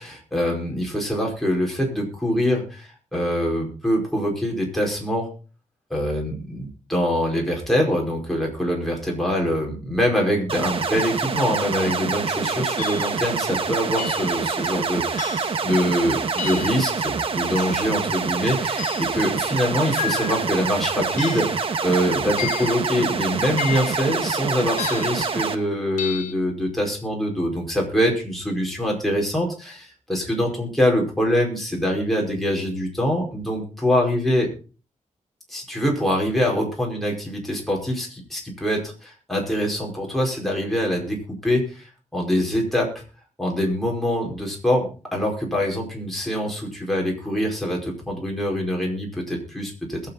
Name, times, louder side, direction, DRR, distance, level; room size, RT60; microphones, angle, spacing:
voice 1, 0.0-5.3 5.9-34.5 35.5-42.9 43.4-50.1, equal, ahead, -1 dB, 5.0 m, -24 dB
sound 1, 10.5-25.6, right 5 dB, 45° right, 1.3 m, -26 dB
sound 2, 11.8-12.0 12.8-13.2 14.0-14.4 15.2-15.6 16.4-16.9 17.6-18.0 18.8-19.2 20.0-20.5 21.2-21.6 22.4-22.8 23.6-24.1 24.8-25.2 26.0-26.3, left 8 dB, 75° left, 1.5 m, -32 dB
21.5 x 8.2 x 4.1 m, 0.36 s
wide cardioid pair, 140°, 13 cm